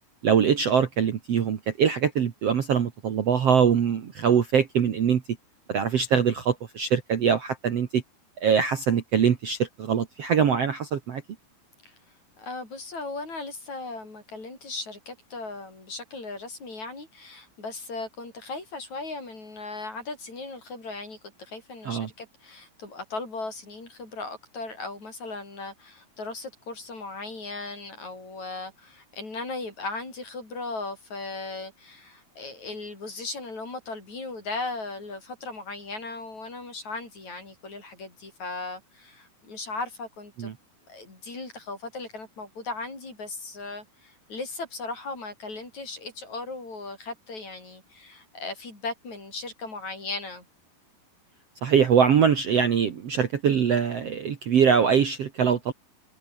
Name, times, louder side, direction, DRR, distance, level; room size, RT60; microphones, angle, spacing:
voice 1, 0.2-5.2 5.7-8.0 8.4-11.2 21.9-22.1 40.4-40.5 51.6-55.7, right 7 dB, 50° right, 2.2 m, -23 dB
voice 2, 12.4-40.5 40.9-50.5, left 3 dB, 45° left, 9.0 m, -37 dB
omnidirectional pair, 4.4 m